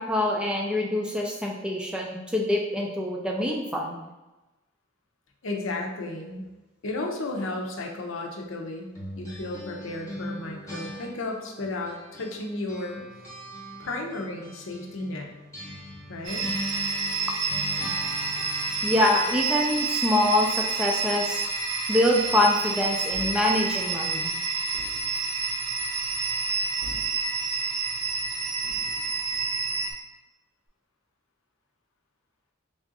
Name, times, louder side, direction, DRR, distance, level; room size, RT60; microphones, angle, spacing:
voice 1, 0.1-4.0 18.8-21.4 21.9-24.3, left 1 dB, 5° right, -1 dB, 0.4 m, -25 dB
voice 2, 5.4-6.5 6.8-8.9 9.1-13.0 13.8-15.3 16.1-16.5, left 2 dB, 70° left, 1 dB, 0.7 m, -33 dB
sound 1, 8.9-12.4 12.7-19.1, left 1 dB, 15° left, 1.0 m, -40 dB
sound 2, 16.2-29.9, right 4 dB, 75° right, 0.8 m, -29 dB
sound 3, 23.1-23.4 24.7-25.1 26.8-27.2 28.6-29.0, left 1 dB, 45° right, 0.7 m, -43 dB
3.4 x 2.5 x 3.9 m, 1.1 s
head